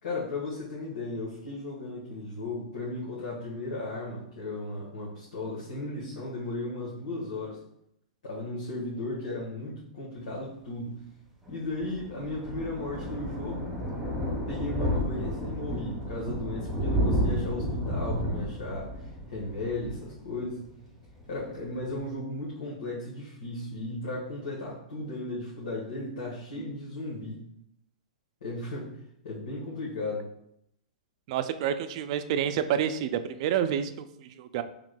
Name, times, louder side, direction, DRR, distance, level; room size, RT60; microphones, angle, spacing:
voice 1, 0.0-7.6 8.2-11.0 11.5-13.7 14.5-20.7 21.3-27.4 28.4-29.0 29.2-30.3, left 2 dB, 80° left, -6 dB, 1.3 m, -35 dB
Thunder, 11.4-20.8 21.1-21.4 21.7-21.8 22.0-22.1, equal, 5° right, 1.4 m, -31 dB
voice 2, 31.3-34.6, right 9 dB, 50° right, 10 dB, 0.4 m, -29 dB
4.7 x 3.5 x 2.2 m, 0.76 s
hypercardioid pair, 130°, 4 cm